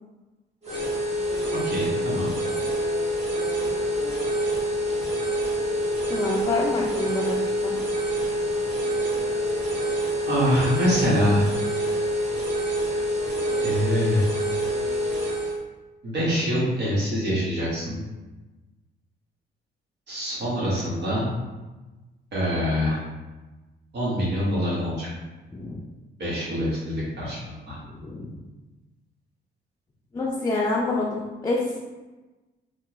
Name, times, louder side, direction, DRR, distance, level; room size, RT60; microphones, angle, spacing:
sound 1, 0.6-15.6, equal, 35° right, 1.2 m, -26 dB
voice 1, 1.5-2.3 10.3-11.5 13.6-14.2 16.0-18.0 20.1-21.3 22.3-23.0 23.9-25.1 26.2-27.4 27.7-27.8, equal, 60° right, -7 dB, 1.4 m, -24 dB
voice 2, 6.1-7.7 25.5-25.8 27.8-28.4 30.1-31.8, left 2 dB, 20° left, -4 dB, 0.4 m, -27 dB
3.3 x 2.2 x 3.0 m, 1.2 s
cardioid pair, 90°, 20 cm